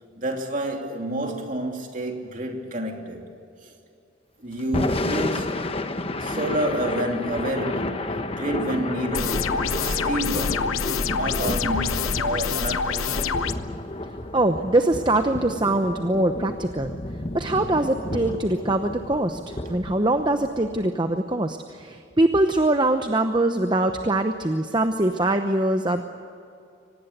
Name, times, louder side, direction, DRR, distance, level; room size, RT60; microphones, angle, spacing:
voice 1, 0.2-3.2 3.6-3.7 4.4-5.7 6.2-10.7 11.1-13.0, right 1 dB, 40° right, 2.9 m, -29 dB
Thunder / Rain, 4.6-20.8, left 1 dB, 30° left, 1.1 m, -31 dB
sound 1, 9.1-13.5, left 6 dB, 90° left, 0.9 m, -26 dB
voice 2, 14.3-16.9 17.3-26.0, right 2 dB, 20° right, 0.8 m, -23 dB
25.0 x 19.0 x 8.2 m
head